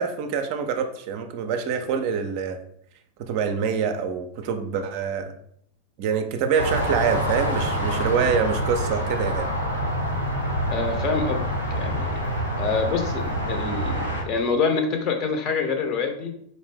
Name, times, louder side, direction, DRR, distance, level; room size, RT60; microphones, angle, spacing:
voice 1, 0.0-2.6 3.2-5.4 6.0-9.5, right 6 dB, 45° right, 7 dB, 0.4 m, -25 dB
sound 1, 6.6-14.2, equal, 85° left, 0.9 m, -26 dB
voice 2, 10.7-11.4 11.7-12.2 12.6-16.3, left 4 dB, 35° left, 4 dB, 0.7 m, -26 dB
4.1 x 2.6 x 3.3 m, 0.67 s
figure-of-eight pair, 90°, 0 cm